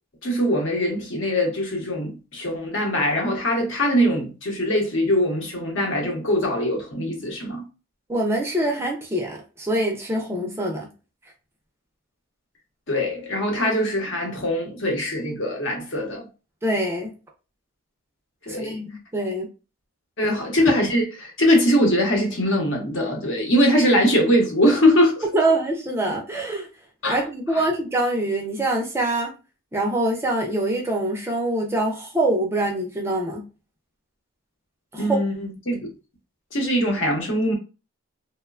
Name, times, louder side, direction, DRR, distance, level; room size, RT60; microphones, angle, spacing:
voice 1, 0.2-7.6 12.9-16.3 18.5-18.8 20.2-25.2 27.0-27.1 27.5-27.6 35.0-35.9 36.5-37.5, equal, 60° left, 0.8 m, -22 dB
voice 2, 8.1-10.9 16.6-17.1 18.5-18.9 19.1-19.5 25.3-26.7 27.1-29.3 29.7-33.4 34.9-35.2, right 1 dB, 10° right, 0.4 m, -24 dB
3.0 x 2.1 x 2.3 m
head